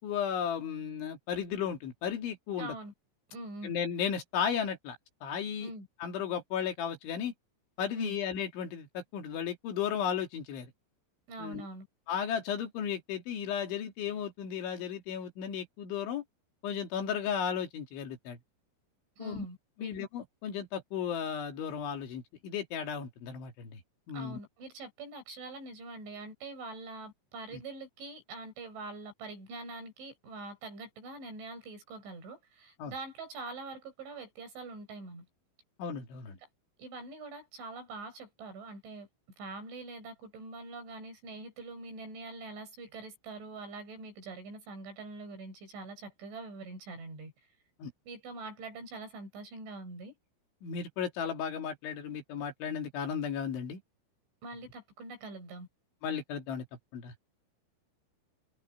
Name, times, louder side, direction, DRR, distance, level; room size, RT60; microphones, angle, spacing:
voice 1, 0.0-2.8 3.6-5.7 6.0-7.3 7.8-10.7 11.4-11.7 12.1-16.2 16.6-18.4 19.2-19.4 19.8-23.8 24.1-24.4 27.5-27.6 32.8-32.9 35.8-36.4 47.8-47.9 50.6-53.8 56.0-56.7 56.9-57.1, left 8 dB, 65° left, 5.0 m, -35 dB
voice 2, 2.6-2.9 3.3-3.8 5.6-5.9 7.9-8.2 11.3-11.9 19.2-20.0 24.1-35.3 36.8-39.1 39.4-47.3 48.1-50.2 54.4-55.7, right 3 dB, 60° right, 9.6 m, -44 dB
omnidirectional pair, 6.0 m